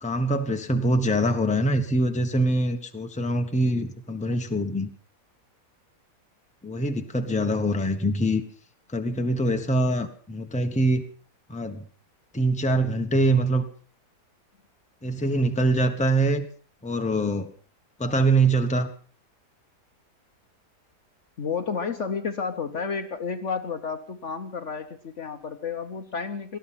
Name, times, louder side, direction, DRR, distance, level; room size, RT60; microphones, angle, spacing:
voice 1, 0.0-4.9 6.6-8.4 8.9-11.0 11.5-11.9 12.3-13.7 15.0-16.5 16.8-17.5 18.0-18.9, right 1 dB, 5° left, 5 dB, 1.1 m, -24 dB
voice 2, 21.4-26.6, left 5 dB, 50° left, 8 dB, 1.2 m, -31 dB
18.5 x 13.0 x 5.7 m, 0.42 s
omnidirectional pair, 1.8 m